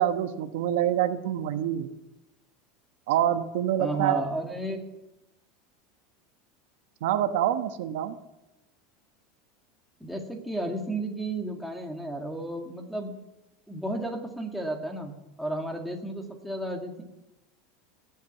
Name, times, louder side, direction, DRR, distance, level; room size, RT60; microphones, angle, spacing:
voice 1, 0.0-1.9 3.1-4.2 7.0-8.2, right 11 dB, 80° right, 9 dB, 1.1 m, -26 dB
voice 2, 3.8-4.9 10.0-13.1 13.7-17.0, right 1 dB, ahead, 0 dB, 2.1 m, -33 dB
18.5 x 8.5 x 7.2 m, 0.94 s
supercardioid pair, 150°, 0 cm